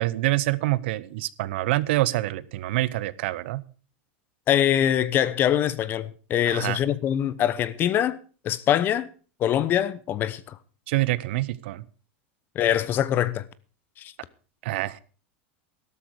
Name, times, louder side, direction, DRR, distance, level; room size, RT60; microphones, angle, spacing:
voice 1, 0.0-3.6 6.5-6.8 10.9-11.8 14.6-15.0, right 18 dB, 70° right, 0.9 m, -26 dB
voice 2, 4.5-8.2 8.4-9.1 9.4-10.6 12.5-13.4 14.0-14.1, left 10 dB, 35° left, 0.9 m, -23 dB
13.0 x 12.5 x 4.8 m
supercardioid pair, 140°, 6 cm